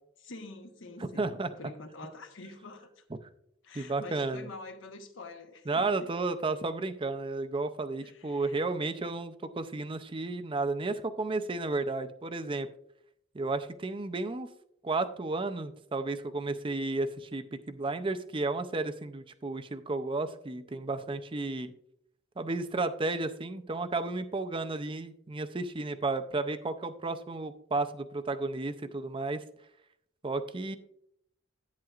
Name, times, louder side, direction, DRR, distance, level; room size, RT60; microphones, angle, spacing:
voice 1, 0.2-3.0 3.6-6.1 8.0-8.7, left 2 dB, 65° left, 1.1 m, -47 dB
voice 2, 1.0-1.5 3.7-4.5 5.7-12.7 13.3-14.5 14.8-21.7 22.4-29.4 30.2-30.8, right 3 dB, 25° right, 0.5 m, -33 dB
10.5 x 8.9 x 2.4 m
head